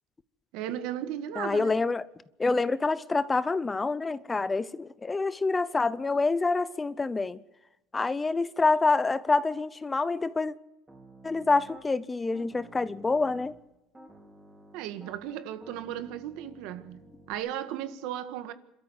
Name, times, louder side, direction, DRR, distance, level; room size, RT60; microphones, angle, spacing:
voice 1, 0.5-1.8 14.7-17.0 17.3-18.5, right 11 dB, 70° right, 1.7 m, -35 dB
voice 2, 1.4-2.0 2.4-7.4 7.9-10.5 11.2-13.5, left 3 dB, 15° left, 0.6 m, -27 dB
Piano, 10.9-11.9 12.3-13.6 13.9-17.3, right 1 dB, 15° right, 4.3 m, -52 dB
27.0 x 13.0 x 7.9 m
cardioid pair, 145°, 0 cm